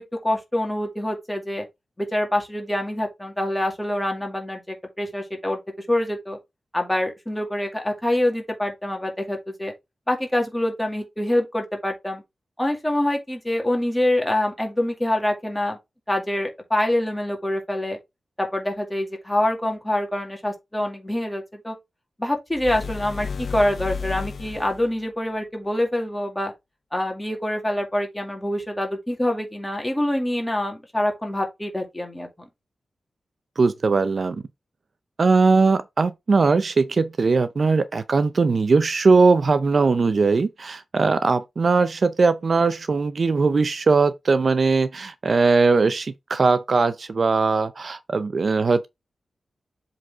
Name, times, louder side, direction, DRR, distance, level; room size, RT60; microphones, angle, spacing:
voice 1, 0.0-1.7 2.0-5.6 5.9-6.4 6.7-9.7 10.1-12.2 12.6-15.8 16.1-18.0 18.4-21.8 22.2-26.5 26.9-32.5, left 1 dB, 10° left, 2.3 m, -25 dB
sound 1, 22.5-24.9, left 5 dB, 60° left, 0.5 m, -33 dB
voice 2, 33.6-34.4 35.2-48.9, right 4 dB, 50° right, 0.5 m, -20 dB
7.6 x 4.1 x 3.5 m
wide cardioid pair, 130°, 0 cm